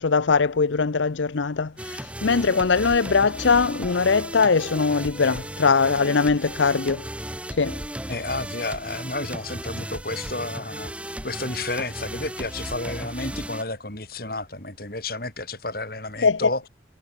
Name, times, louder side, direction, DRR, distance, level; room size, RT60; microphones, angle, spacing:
voice 1, 0.0-7.0 7.5-7.8 16.2-16.5, left 4 dB, 85° left, 0.7 m, -21 dB
sound 1, 1.8-13.6, right 1 dB, 5° right, 5.6 m, -35 dB
voice 2, 8.1-16.7, left 2 dB, 50° left, 6.2 m, -31 dB
head